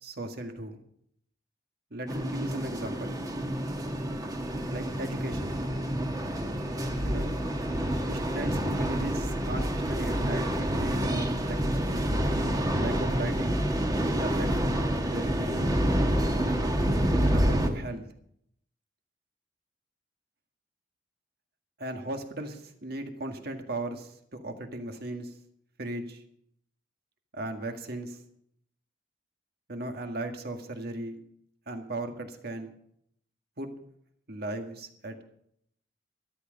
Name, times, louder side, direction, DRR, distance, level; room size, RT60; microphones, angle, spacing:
voice 1, 0.0-0.8 1.9-3.2 4.7-5.6 7.0-7.3 8.1-12.1 12.7-13.6 14.2-14.5 15.0-15.7 17.2-18.1 21.8-25.3 25.8-26.2 27.3-28.2 29.7-31.2 31.7-32.7 33.6-33.7 34.3-35.2, right 1 dB, 60° right, 5 dB, 1.9 m, -37 dB
sound 1, 2.1-17.7, equal, 20° right, 1.4 m, -28 dB
13.0 x 13.0 x 5.3 m, 0.69 s
head